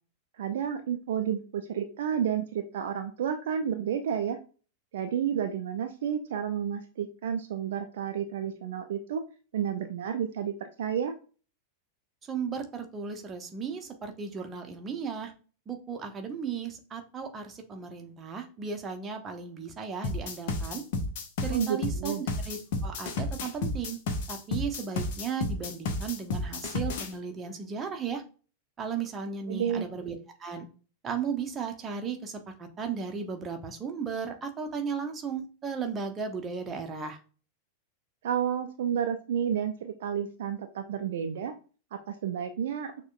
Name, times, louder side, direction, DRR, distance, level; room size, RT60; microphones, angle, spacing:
voice 1, 0.4-4.4 4.9-9.2 9.5-11.1 21.5-22.2 29.5-29.9 38.2-41.5 41.9-42.9, right 8 dB, 60° right, 8 dB, 0.3 m, -31 dB
voice 2, 12.3-15.3 15.7-20.8 21.4-24.0 24.3-28.2 28.8-30.7 31.0-37.2, right 6 dB, 20° right, 4 dB, 0.7 m, -35 dB
sound 1, 20.0-27.1, left 2 dB, 50° left, 0.6 m, -31 dB
6.1 x 2.2 x 2.5 m, 0.37 s
figure-of-eight pair, 90°, 0 cm